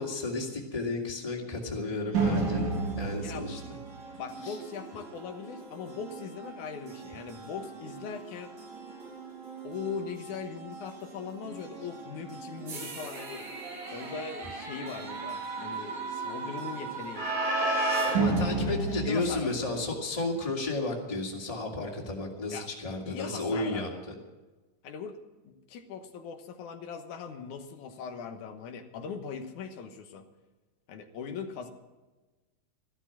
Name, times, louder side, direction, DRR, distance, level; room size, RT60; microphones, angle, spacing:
voice 1, 0.0-2.7 3.0-3.6 4.4-4.6 18.1-23.9, left 2 dB, 10° left, 0 dB, 2.2 m, -32 dB
sound 1, 2.1-19.9, right 3 dB, 65° right, 4.4 m, -34 dB
voice 2, 3.2-3.6 4.1-8.6 9.6-13.5 13.9-17.3 18.5-19.8 22.5-22.7 23.1-24.0 24.8-25.2 25.4-30.3 30.9-31.7, left 6 dB, 80° left, 6 dB, 2.6 m, -40 dB
15.0 x 13.0 x 6.1 m, 1.2 s
omnidirectional pair, 3.5 m